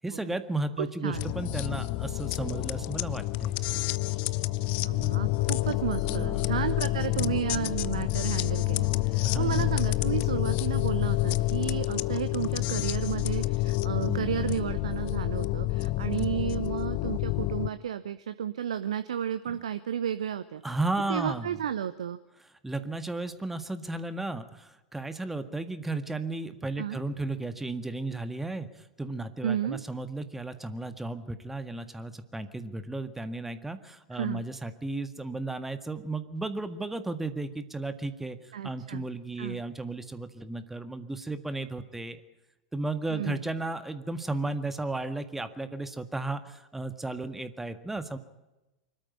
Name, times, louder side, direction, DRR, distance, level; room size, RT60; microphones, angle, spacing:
voice 1, 0.0-3.5 6.0-6.5 9.2-9.7 14.1-14.3 16.2-16.3 19.5-19.6 20.6-21.6 22.6-28.7 29.0-42.2 42.7-48.2, right 2 dB, 5° right, 10 dB, 1.8 m, -34 dB
voice 2, 0.8-1.3 4.8-20.6 21.1-22.2 26.8-27.0 29.4-29.8 34.1-34.4 38.5-39.0 39.4-39.6 43.1-43.4, right 9 dB, 65° right, 11 dB, 0.9 m, -32 dB
sound 1, 1.1-17.7, left 19 dB, 45° left, 0.7 m, -28 dB
24.5 x 13.5 x 9.8 m, 1.0 s
figure-of-eight pair, 90°, 4 cm